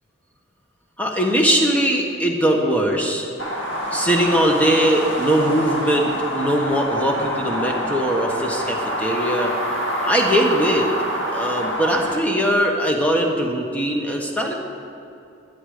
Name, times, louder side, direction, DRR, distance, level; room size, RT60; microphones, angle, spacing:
voice 1, 1.0-3.3 3.9-9.5 10.0-10.9 11.3-14.5, equal, 5° left, 0 dB, 1.2 m, -20 dB
sound 1, 3.4-12.2, equal, 70° left, 1.7 m, -26 dB
12.0 x 11.0 x 5.0 m, 2.7 s
head